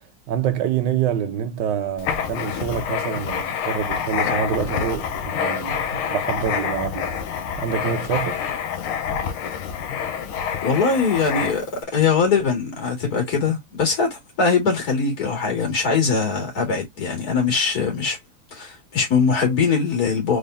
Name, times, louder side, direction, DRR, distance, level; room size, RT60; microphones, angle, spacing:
voice 1, 0.0-7.1 7.6-8.5, right 8 dB, 65° right, 1.2 m, -26 dB
Writing, 2.0-11.8, left 7 dB, 80° left, 1.5 m, -27 dB
voice 2, 10.6-11.7 11.9-18.2 18.5-20.4, left 5 dB, 45° left, 2.3 m, -21 dB
4.1 x 3.5 x 2.5 m
omnidirectional pair, 2.3 m